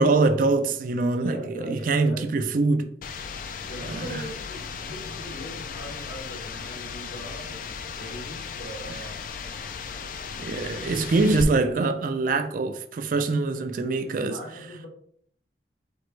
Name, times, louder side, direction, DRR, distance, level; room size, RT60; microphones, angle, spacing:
voice 1, 0.0-2.9 4.0-4.2 10.4-14.4, right 3 dB, 50° right, 0.3 m, -24 dB
voice 2, 1.2-2.3 3.6-9.2 11.1-11.5 14.3-14.9, equal, 80° left, 1.6 m, -40 dB
sound 1, 3.0-11.4, left 6 dB, 50° left, 0.3 m, -36 dB
4.4 x 2.9 x 3.1 m
head